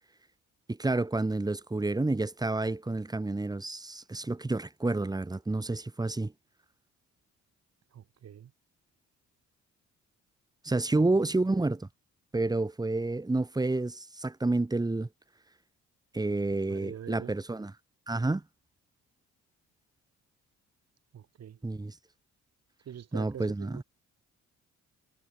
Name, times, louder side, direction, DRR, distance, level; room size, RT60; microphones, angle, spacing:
voice 1, 0.7-6.3 10.6-11.9 12.3-15.1 16.1-17.7 18.1-18.4 21.6-21.9 23.1-23.8, right 2 dB, 15° right, 1.6 m, -29 dB
voice 2, 7.9-8.5 10.9-11.1 16.6-17.3 21.1-21.6 22.9-23.8, right 9 dB, 55° right, 2.4 m, -44 dB
cardioid pair, 90°, 30 cm